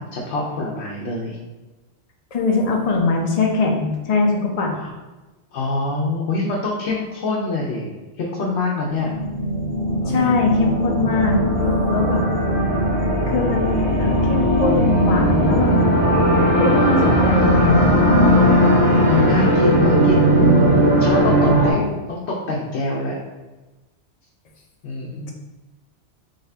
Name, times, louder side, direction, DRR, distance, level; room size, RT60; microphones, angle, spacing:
voice 1, 0.0-1.4 4.8-4.9 5.5-7.9 8.2-9.1 10.0-10.4 16.9-17.2 19.1-20.4 21.0-23.2 24.8-25.3, left 3 dB, 85° left, -3 dB, 0.9 m, -25 dB
voice 2, 2.3-4.8 10.1-12.3 13.3-15.7 16.6-18.2 21.7-21.9, left 3 dB, 45° left, 0 dB, 0.6 m, -21 dB
sound 1, 8.9-21.7, equal, 10° left, 1.1 m, -17 dB
3.9 x 3.5 x 2.7 m, 1.2 s
omnidirectional pair, 1.1 m